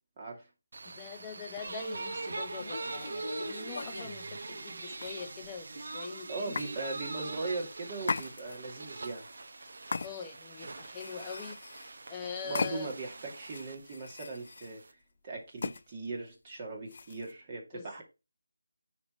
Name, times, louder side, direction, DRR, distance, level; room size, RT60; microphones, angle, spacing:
sound 1, 0.7-14.9, right 3 dB, 55° right, 1.0 m, -42 dB
voice 1, 0.8-6.6 10.0-12.9 17.7-18.0, left 6 dB, 15° left, 0.8 m, -43 dB
sound 2, 1.7-1.8 2.6-4.2 5.0-5.6 6.5-6.7 8.0-8.8 9.9-10.5 10.9-12.0 12.5-13.1 13.5-14.7 15.6-15.8 16.9-17.3, left 4 dB, 45° left, 0.3 m, -38 dB
voice 2, 6.3-9.3 12.4-14.8 15.2-18.0, right 3 dB, 25° right, 2.2 m, -39 dB
9.7 x 3.4 x 4.4 m
figure-of-eight pair, 170°, 0 cm